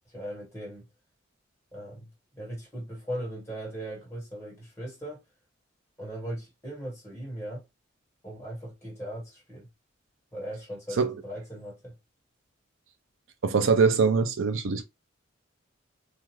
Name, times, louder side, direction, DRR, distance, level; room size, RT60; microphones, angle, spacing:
voice 1, 0.1-0.9 1.7-2.1 2.3-5.2 6.0-7.6 8.2-9.7 10.3-11.9, right 1 dB, 15° left, 1.5 m, -38 dB
voice 2, 13.4-14.8, right 5 dB, 70° right, 0.5 m, -23 dB
2.5 x 2.4 x 3.1 m
head